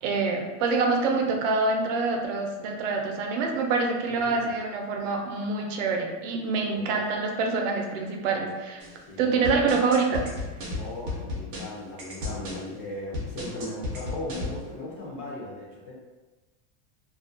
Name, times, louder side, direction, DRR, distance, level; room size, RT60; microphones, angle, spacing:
voice 1, 0.0-8.8 9.2-10.2, right 4 dB, 80° right, 2 dB, 0.6 m, -26 dB
sound 1, 8.8-8.9 9.4-12.6 13.1-14.6, left 2 dB, 30° right, 0.4 m, -34 dB
voice 2, 9.1-9.9 10.7-15.9, left 1 dB, 35° left, -4 dB, 0.4 m, -38 dB
2.3 x 2.1 x 2.6 m, 1.2 s
cardioid pair, 180°, 37 cm